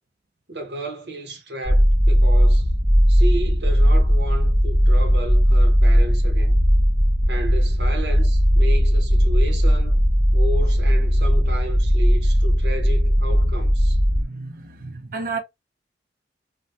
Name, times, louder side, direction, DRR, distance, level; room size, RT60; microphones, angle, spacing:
voice 1, 0.5-2.7 3.1-6.6 7.3-10.0 10.3-14.0, equal, 75° right, 1.1 m, -33 dB
sound 1, 1.6-14.2, equal, 10° right, 0.6 m, -17 dB
voice 2, 14.1-15.4, right 4 dB, 50° right, 0.6 m, -32 dB
2.8 x 2.3 x 3.2 m
head